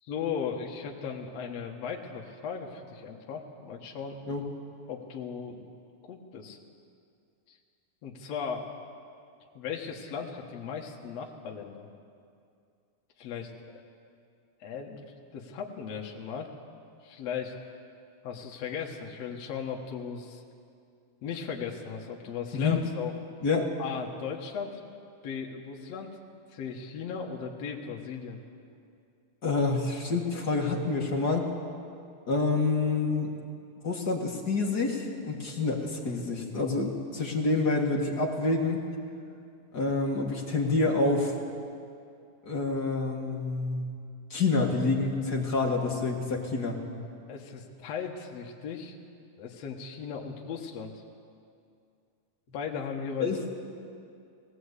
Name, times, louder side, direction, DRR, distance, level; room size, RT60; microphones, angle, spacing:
voice 1, 0.1-4.2 4.9-5.7 6.0-6.6 7.5-7.6 8.0-8.7 9.5-11.9 13.2-13.8 14.6-15.0 15.3-16.5 17.0-17.5 18.2-20.4 21.2-23.2 23.8-24.8 25.2-26.2 26.5-28.4 47.3-49.0 49.4-50.9 52.5-53.3, left 6 dB, 60° left, 0 dB, 2.4 m, -37 dB
voice 2, 29.4-31.5 32.3-33.3 33.8-38.8 39.7-41.3 42.4-43.9 44.3-46.8 53.2-53.4, left 3 dB, 40° left, 0 dB, 1.7 m, -27 dB
19.5 x 17.5 x 8.2 m, 2.4 s
omnidirectional pair, 3.7 m